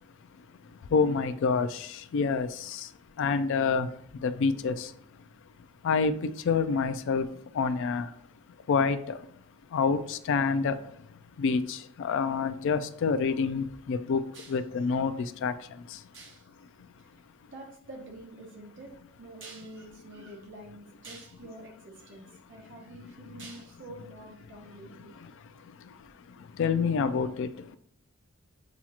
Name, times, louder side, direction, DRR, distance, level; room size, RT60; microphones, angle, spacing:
voice 1, 0.9-1.7 2.1-2.5 3.2-3.9 4.2-4.7 5.8-7.3 7.6-8.0 8.7-9.0 9.7-10.7 11.4-14.2 14.5-15.1 15.4-15.5 26.6-27.5, left 5 dB, 55° left, 11 dB, 0.3 m, -26 dB
voice 2, 16.1-16.5 17.0-17.1 17.5-18.9 19.2-25.3, right 1 dB, 55° right, 0 dB, 0.9 m, -47 dB
7.1 x 2.4 x 2.8 m, 0.64 s
head